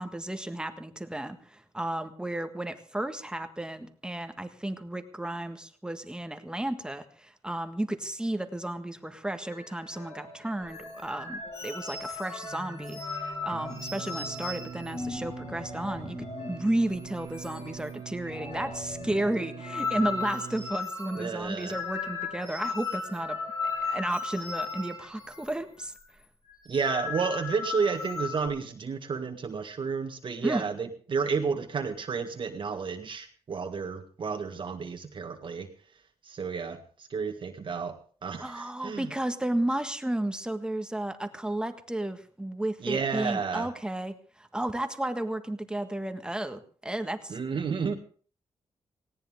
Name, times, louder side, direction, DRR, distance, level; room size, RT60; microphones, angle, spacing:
voice 1, 0.0-23.4 23.8-25.9 30.4-30.7 38.4-47.4, right 1 dB, 10° right, 8 dB, 1.6 m, -33 dB
sound 1, 9.4-25.8, left 2 dB, 65° left, 4.8 m, -49 dB
sound 2, 10.7-16.6 16.9-17.1 17.3-17.9 18.2-25.5 25.8-26.0 26.5-28.5, left 4 dB, 35° left, 4.6 m, -36 dB
Singing, 13.5-20.7, right 8 dB, 90° right, 1.2 m, -43 dB
voice 2, 21.1-21.7 26.6-35.7 36.2-36.8 37.1-37.9 38.2-39.1 42.8-43.7 47.3-47.9, right 5 dB, 50° right, 4 dB, 1.7 m, -31 dB
18.5 x 17.5 x 3.7 m, 0.42 s
wide cardioid pair, 125°, 11 cm